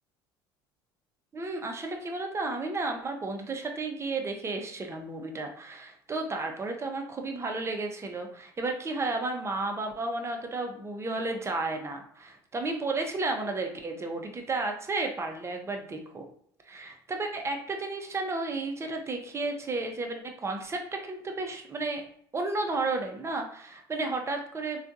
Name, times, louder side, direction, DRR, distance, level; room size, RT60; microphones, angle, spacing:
voice 1, 1.3-16.3 16.7-22.0 22.3-24.8, right 3 dB, 25° right, 3 dB, 0.7 m, -33 dB
3.4 x 2.4 x 2.7 m, 0.64 s
hypercardioid pair, 75°, 11 cm